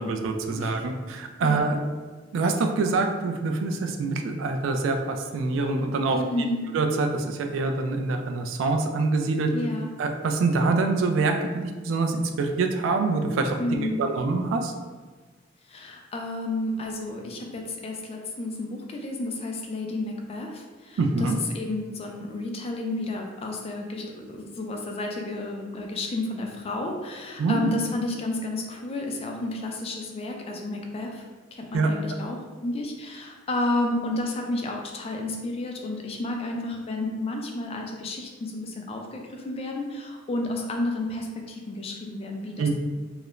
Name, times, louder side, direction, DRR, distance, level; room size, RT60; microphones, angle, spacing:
voice 1, 0.0-1.8 2.3-6.2 6.7-9.5 10.0-11.4 11.6-14.7 21.0-21.4 27.4-27.7 31.7-31.9 42.6-42.7, right 3 dB, 85° right, 4 dB, 0.3 m, -25 dB
voice 2, 6.1-6.6 9.5-9.9 13.6-14.0 15.7-31.2 31.5-42.7, left 2 dB, 30° left, 2 dB, 0.3 m, -31 dB
2.3 x 2.0 x 2.9 m, 1.4 s
head